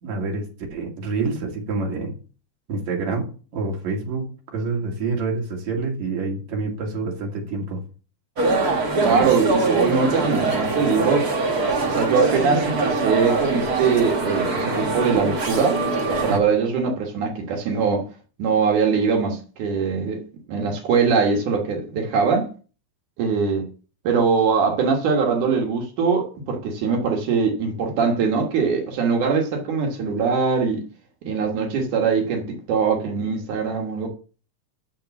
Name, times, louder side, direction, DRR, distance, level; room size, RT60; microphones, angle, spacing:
voice 1, 0.0-2.1 2.7-7.8 16.3-16.4, right 3 dB, 65° right, 3.5 m, -27 dB
sound 1, 8.4-16.4, right 3 dB, 45° right, 1.3 m, -23 dB
voice 2, 9.0-11.3 11.8-18.1 18.4-20.2 20.5-22.5 23.2-23.7 24.0-30.8 31.2-34.1, right 5 dB, 85° right, 3.0 m, -22 dB
13.0 x 4.6 x 7.0 m
omnidirectional pair, 3.5 m